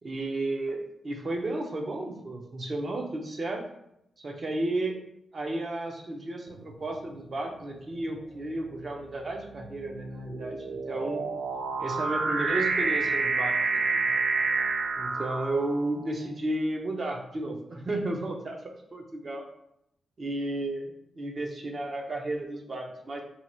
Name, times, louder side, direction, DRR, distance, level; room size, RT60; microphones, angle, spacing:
voice 1, 0.0-3.6 4.2-5.0 5.3-11.2 11.8-13.6 13.9-14.0 15.0-18.6 18.9-19.4 20.2-23.2, right 2 dB, 45° right, 2 dB, 0.6 m, -33 dB
sound 1, 6.6-7.0 7.8-16.0, right 4 dB, 85° right, 0.4 m, -29 dB
2.8 x 2.4 x 4.1 m, 0.79 s
cardioid pair, 95°, 0 cm